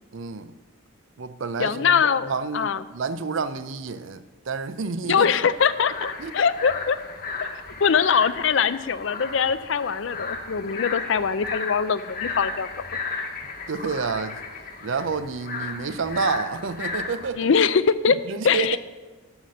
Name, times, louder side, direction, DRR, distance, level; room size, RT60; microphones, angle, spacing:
voice 1, 0.1-0.5 1.2-5.4 6.2-6.3 13.7-14.4 14.8-17.5 18.1-18.8, right 4 dB, 65° right, 13 dB, 0.6 m, -29 dB
voice 2, 1.6-2.8 5.1-7.0 7.4-12.7 17.4-18.2 18.4-18.8, left 6 dB, 60° left, 15 dB, 0.4 m, -22 dB
sound 1, 5.5-17.3, left 4 dB, 45° left, 1.2 m, -34 dB
12.5 x 5.8 x 6.4 m, 1.2 s
head